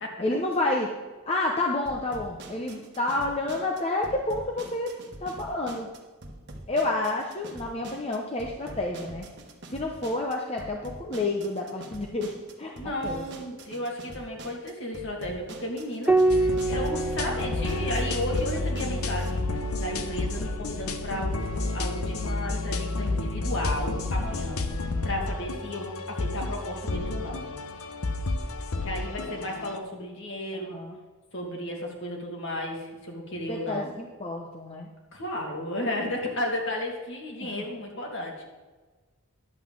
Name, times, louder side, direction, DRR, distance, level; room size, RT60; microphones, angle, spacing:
voice 1, 0.2-0.9 1.3-5.9 6.7-9.3 9.7-12.7 13.0-13.2 30.5-31.0 33.5-34.9 37.4-37.6, left 2 dB, 25° left, 0 dB, 0.8 m, -29 dB
sound 1, 1.9-19.3, right 1 dB, 50° right, 1.2 m, -45 dB
voice 2, 12.8-19.4 19.8-27.4 28.8-30.8 31.3-33.9 35.1-38.4, left 1 dB, 55° left, 0 dB, 2.2 m, -33 dB
Piano, 16.1-20.9 22.6-23.4, right 2 dB, 5° right, 0.4 m, -29 dB
sound 2, 16.3-29.8, left 2 dB, 75° left, 0.8 m, -31 dB
10.5 x 5.7 x 7.4 m, 1.3 s
head